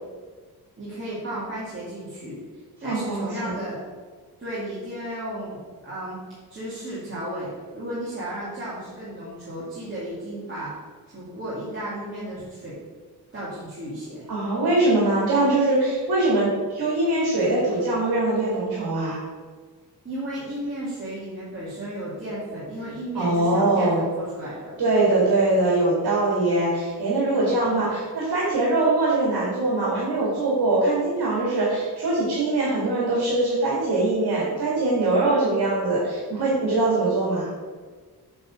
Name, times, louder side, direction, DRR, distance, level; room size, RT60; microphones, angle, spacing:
voice 1, 0.8-2.4 2.8-3.8 4.4-6.2 6.5-10.8 11.1-12.8 13.3-14.3 20.0-24.8 27.6-27.9, right 1 dB, 30° right, -10 dB, 2.4 m, -34 dB
voice 2, 2.8-3.5 14.3-19.2 23.1-24.0 24.8-37.5, right 2 dB, 80° right, -6 dB, 2.2 m, -22 dB
7.8 x 4.0 x 6.2 m, 1.5 s
wide cardioid pair, 140°, 38 cm